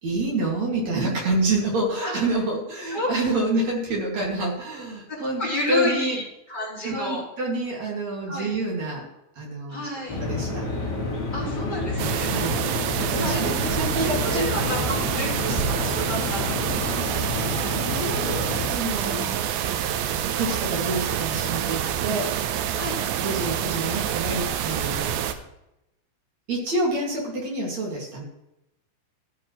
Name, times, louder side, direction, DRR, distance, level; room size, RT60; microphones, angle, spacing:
voice 1, 0.0-5.4 5.7-6.2 6.8-9.1 9.4-9.9 10.2-10.6 12.3-12.6 13.0-14.7 17.8-19.4 20.4-22.3 23.2-25.2 26.5-28.2, right 2 dB, 45° right, -2 dB, 2.7 m, -27 dB
voice 2, 5.1-6.2 6.5-7.2 8.3-8.5 9.7-10.2 11.3-12.3 13.1-13.6 14.0-16.9 19.0-19.2 22.7-23.0, left 1 dB, 10° left, -6 dB, 4.4 m, -31 dB
sound 1, 10.1-18.7, left 3 dB, 30° left, 2.4 m, -29 dB
sound 2, 12.0-25.3, right 9 dB, 80° right, 2.8 m, -27 dB
14.5 x 9.4 x 3.1 m, 0.88 s
omnidirectional pair, 5.7 m